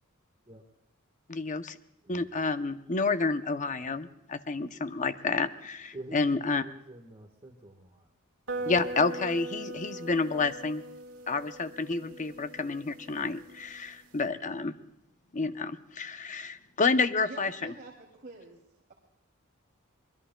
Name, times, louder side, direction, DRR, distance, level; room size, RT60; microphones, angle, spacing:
voice 1, 1.3-1.8 2.1-6.6 8.6-10.8 11.3-14.7 15.3-17.7, left 4 dB, 35° left, 10 dB, 0.7 m, -29 dB
voice 2, 5.9-8.1 8.5-8.7, right 2 dB, 25° right, 1 dB, 1.4 m, -47 dB
sound 1, 8.5-14.2, right 2 dB, 85° right, 1.8 m, -40 dB
voice 3, 17.2-18.6, right 2 dB, 45° right, -3 dB, 2.9 m, -47 dB
25.0 x 21.0 x 2.3 m, 0.85 s
head